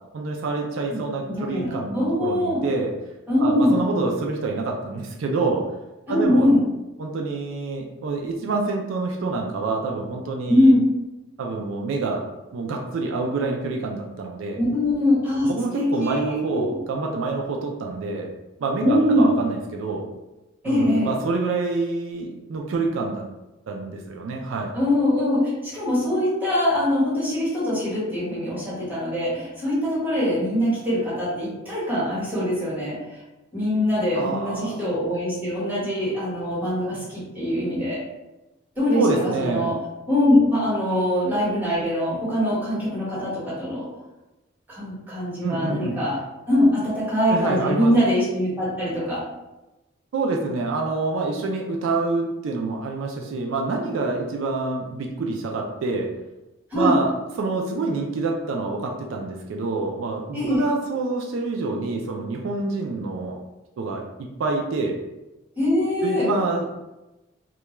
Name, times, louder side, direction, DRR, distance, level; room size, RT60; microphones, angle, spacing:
voice 1, 0.1-2.9 3.4-5.7 6.1-6.5 7.0-10.7 11.4-14.6 15.4-18.3 18.6-20.1 20.6-23.3 23.7-24.7 34.1-34.8 38.9-39.7 45.4-46.0 47.3-47.9 50.1-56.1 56.7-57.1 57.4-63.4 63.8-64.0 64.4-65.0 66.0-66.7, right 3 dB, 75° right, 1 dB, 0.3 m, -27 dB
voice 2, 0.9-2.6 3.3-3.8 6.1-6.6 10.5-10.8 14.6-15.5 15.7-16.8 18.8-19.3 20.6-21.1 24.7-33.0 33.5-38.0 38.8-39.0 39.4-39.7 40.1-43.8 44.7-46.2 46.5-49.2 56.7-56.9 60.3-60.6 65.6-66.3, left 1 dB, 10° right, -10 dB, 1.3 m, -22 dB
2.3 x 2.2 x 3.0 m, 1.0 s
head